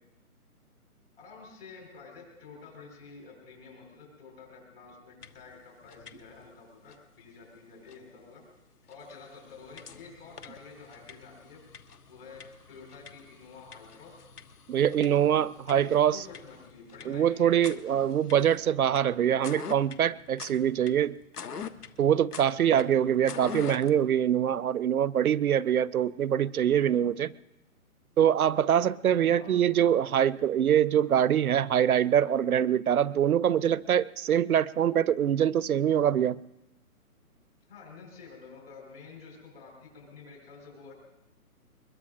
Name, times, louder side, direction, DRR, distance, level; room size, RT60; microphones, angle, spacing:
voice 1, 1.2-8.4 8.9-11.6 12.1-12.4 12.7-14.2 14.9-15.2 15.7-18.0 29.3-29.6 37.7-40.9, left 4 dB, 40° left, 5.1 m, -49 dB
sound 1, 5.2-5.5 5.8-6.5 6.9-7.0 7.9-8.0 8.5-8.6 8.9-24.0, left 6 dB, 85° left, 1.2 m, -46 dB
voice 2, 14.7-16.2 17.1-21.2 22.0-27.3 28.2-36.4, right 9 dB, 70° right, 0.6 m, -24 dB
23.5 x 21.5 x 2.6 m
hypercardioid pair, 170°, 45 cm